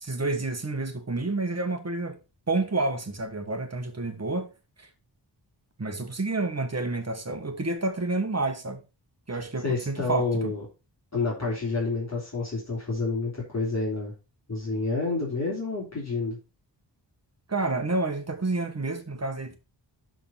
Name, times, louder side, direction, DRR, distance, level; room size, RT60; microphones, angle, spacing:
voice 1, 0.0-2.2 2.5-4.5 4.8-4.9 5.8-8.8 9.3-10.5 17.5-19.6, right 2 dB, 35° right, 1.6 m, -29 dB
voice 2, 9.3-10.6 11.1-14.1 14.5-16.4, left 3 dB, 35° left, 3.2 m, -29 dB
12.0 x 4.1 x 4.2 m
wide cardioid pair, 105°, 45 cm